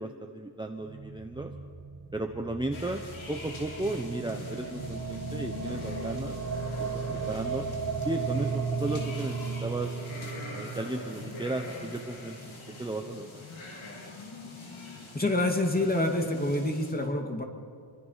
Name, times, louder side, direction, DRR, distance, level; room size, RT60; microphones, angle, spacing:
voice 1, 0.0-1.5 2.1-3.0 3.3-6.4 7.1-7.7 8.0-9.9 10.5-12.5 12.8-13.4, right 2 dB, 10° right, 3 dB, 1.0 m, -34 dB
sound 1, 0.8-13.1, right 4 dB, 45° right, 1.6 m, -36 dB
sound 2, 2.7-16.9, left 2 dB, 70° left, 4.5 m, -44 dB
voice 2, 15.1-17.4, left 1 dB, 20° left, 3 dB, 2.3 m, -27 dB
27.0 x 24.0 x 5.8 m, 2.2 s
wide cardioid pair, 155°, 49 cm